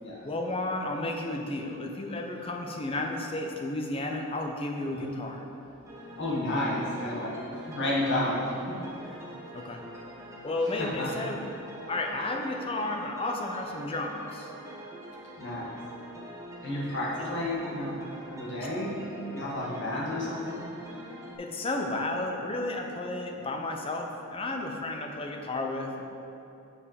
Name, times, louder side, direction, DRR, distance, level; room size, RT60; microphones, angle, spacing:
voice 1, 0.2-5.5 9.5-9.8 10.4-11.4 11.9-14.5 21.4-26.0, left 2 dB, 25° left, 2 dB, 0.6 m, -32 dB
sound 1, 5.9-21.4, right 1 dB, 15° right, 1.0 m, -45 dB
voice 2, 6.2-9.3 10.8-11.1 15.4-15.8 16.6-19.0 19.3-20.6, left 1 dB, 50° left, -6 dB, 1.7 m, -32 dB
6.9 x 5.5 x 4.9 m, 2.9 s
head